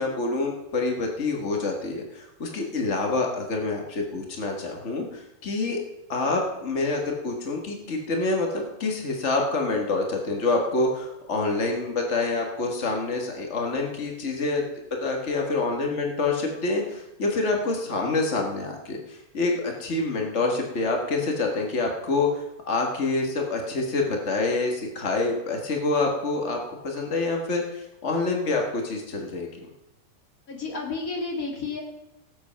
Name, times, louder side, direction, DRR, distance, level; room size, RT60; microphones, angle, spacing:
voice 1, 0.0-5.8 6.1-14.6 14.9-26.6 26.8-29.5, left 3 dB, 80° left, 1 dB, 0.6 m, -27 dB
voice 2, 30.5-31.8, left 4 dB, 30° left, 0 dB, 2.2 m, -31 dB
18.5 x 7.6 x 5.7 m, 0.91 s
omnidirectional pair, 4.1 m